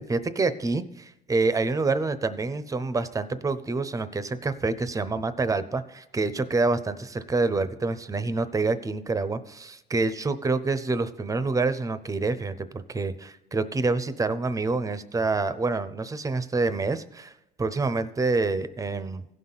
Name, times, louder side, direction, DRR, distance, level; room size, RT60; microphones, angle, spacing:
voice 1, 0.0-17.3 17.6-19.2, right 3 dB, 20° right, 13 dB, 0.7 m, -27 dB
16.0 x 5.8 x 4.0 m, 0.92 s
cardioid pair, 110°, 17 cm